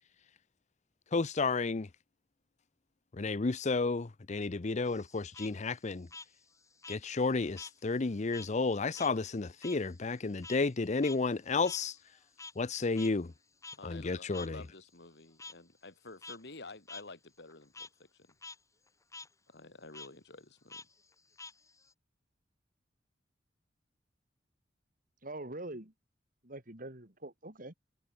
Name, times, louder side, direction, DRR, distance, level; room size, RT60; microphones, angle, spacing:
voice 1, 1.1-1.9 3.1-6.1 6.9-12.0 12.6-13.3 13.8-14.6, left 3 dB, 40° left, 0.6 m, -32 dB
Frog, 4.9-7.8 8.1-12.7 13.0-13.1 13.6-13.8 14.3-14.5 15.4-15.5 16.1-16.4 16.9-17.0 17.4-17.9 18.3-18.6 18.9-19.3 19.9-20.1 20.7-21.9, left 4 dB, 20° left, 2.0 m, -48 dB
voice 2, 13.7-18.3 19.5-20.8, left 3 dB, 65° left, 3.0 m, -51 dB
voice 3, 25.2-25.9 26.4-27.7, right 1 dB, 50° right, 4.0 m, -44 dB
head